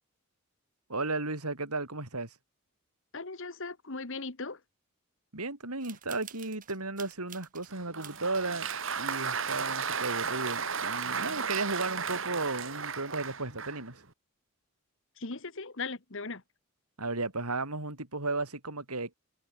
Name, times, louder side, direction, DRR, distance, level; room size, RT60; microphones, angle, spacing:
voice 1, 0.9-2.3 5.3-8.7 9.0-14.0 17.0-19.1, right 3 dB, 85° right, 5.3 m, -34 dB
voice 2, 3.1-4.6 15.2-16.4, left 3 dB, 60° left, 1.5 m, -38 dB
sound 1, 5.8-7.7 8.0-9.2 9.6-9.7 10.1-10.2 10.4-10.9, right 10 dB, 35° right, 5.3 m, -50 dB
Applause, 7.7-13.9, right 6 dB, 60° right, 3.4 m, -34 dB
head